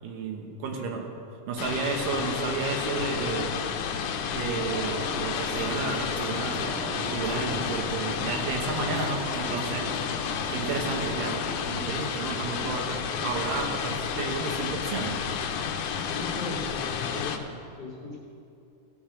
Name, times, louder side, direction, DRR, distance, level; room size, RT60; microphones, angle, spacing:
voice 1, 0.0-1.1 1.5-3.5 4.3-10.2 10.5-11.4 11.7-15.2, right 4 dB, 75° right, 2 dB, 2.6 m, -32 dB
voice 2, 0.6-0.9 16.0-17.5 17.8-18.2, left 3 dB, 50° left, -4 dB, 1.4 m, -38 dB
sound 1, 1.6-17.4, left 7 dB, 75° left, 1.9 m, -31 dB
sound 2, 4.6-11.6, right 2 dB, 40° right, 2.7 m, -39 dB
16.5 x 6.1 x 6.3 m, 2.6 s
omnidirectional pair, 4.0 m